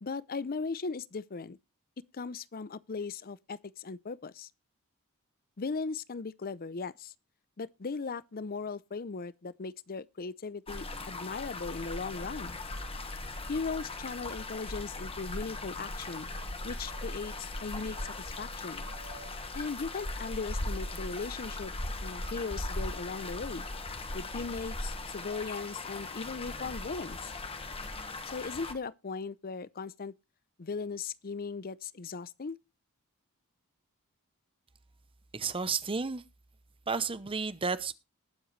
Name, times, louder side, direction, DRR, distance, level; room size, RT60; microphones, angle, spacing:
voice 1, 0.0-1.6 2.0-4.5 5.6-7.1 7.6-12.6 13.5-16.3 16.6-18.8 19.5-21.7 22.0-23.7 24.1-27.3 28.3-30.1 30.6-32.6, left 4 dB, 45° left, 0.6 m, -38 dB
sound 1, 10.7-28.7, left 2 dB, 25° left, 1.5 m, -39 dB
sound 2, 15.8-23.8, right 4 dB, 80° right, 3.6 m, -59 dB
voice 2, 35.3-36.2 36.9-37.9, right 4 dB, 25° right, 0.7 m, -32 dB
20.0 x 7.8 x 3.2 m
head